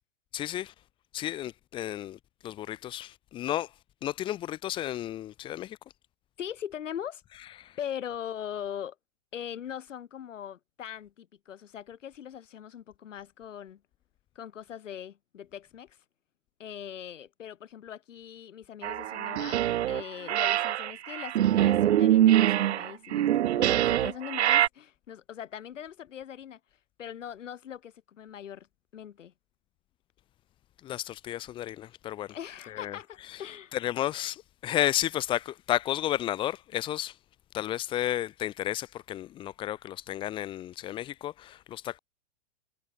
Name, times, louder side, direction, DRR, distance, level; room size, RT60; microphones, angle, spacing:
voice 1, 0.3-0.7 1.1-3.7 4.0-5.8 7.6-7.8 30.8-32.3 32.7-33.0 33.3-33.4 33.7-37.2 37.5-42.0, left 13 dB, 15° left, 0.8 m, -32 dB
voice 2, 6.4-7.2 7.8-9.0 9.3-13.8 14.3-16.0 16.6-26.6 27.0-28.7 28.9-29.3 32.3-33.8, left 9 dB, 80° left, 4.5 m, -41 dB
sound 1, 18.8-20.0 20.3-24.7, right 12 dB, 65° right, 1.9 m, -24 dB
hypercardioid pair, 160°, 36 cm